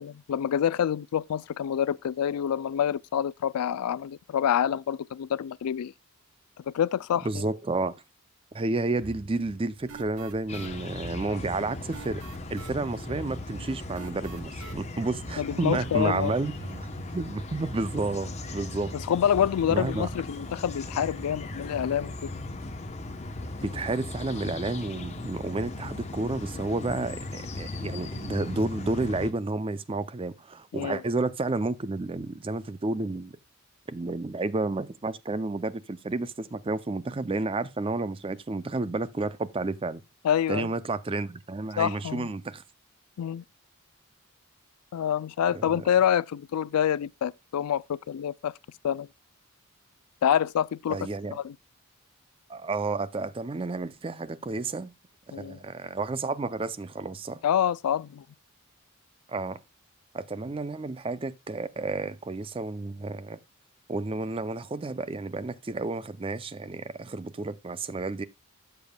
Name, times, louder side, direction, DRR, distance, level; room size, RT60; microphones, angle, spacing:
voice 1, 0.0-5.9 6.7-7.3 15.4-16.3 18.9-22.1 30.7-31.0 40.2-40.7 41.8-42.3 43.2-43.4 44.9-48.5 48.8-49.1 50.2-51.0 51.3-51.5 55.3-55.6 57.4-58.2, left 9 dB, 85° left, 0.3 m, -27 dB
voice 2, 7.2-7.9 8.5-12.2 12.5-16.5 16.8-16.9 17.1-18.9 19.7-20.1 23.6-33.3 33.9-40.0 40.5-42.6 45.5-45.8 50.9-51.4 52.5-54.9 55.3-57.4 59.3-59.6 60.1-63.4 63.9-68.2, right 3 dB, 25° right, 0.4 m, -31 dB
sound 1, 9.0-17.3, right 4 dB, 75° right, 0.8 m, -46 dB
sound 2, 10.5-29.3, left 2 dB, 30° left, 0.9 m, -38 dB
13.0 x 6.9 x 2.2 m
head